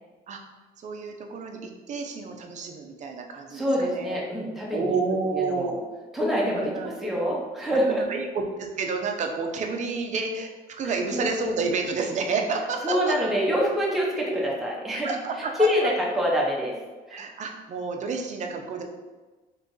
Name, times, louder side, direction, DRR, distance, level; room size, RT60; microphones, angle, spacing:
voice 1, 0.8-4.2 4.7-5.7 6.6-6.9 7.9-8.3 8.6-13.1 15.0-15.7 17.1-18.8, right 4 dB, 45° right, 3 dB, 0.5 m, -30 dB
voice 2, 3.5-5.0 5.3-5.8 6.1-8.0 10.8-11.3 12.8-15.1 15.6-16.7 17.1-17.2, equal, ahead, -4 dB, 0.8 m, -26 dB
3.1 x 2.5 x 3.7 m, 1.3 s
cardioid pair, 110°, 17 cm